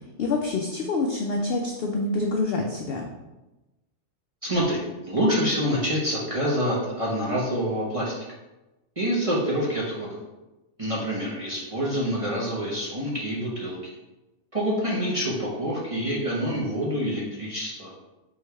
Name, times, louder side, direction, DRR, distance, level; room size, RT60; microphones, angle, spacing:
voice 1, 0.2-3.1, left 3 dB, 70° left, 1 dB, 0.5 m, -26 dB
voice 2, 4.4-8.1 9.0-10.1 10.8-13.9 14.5-17.9, equal, 30° right, -6 dB, 0.7 m, -26 dB
4.5 x 3.2 x 3.4 m, 1.0 s
omnidirectional pair, 1.5 m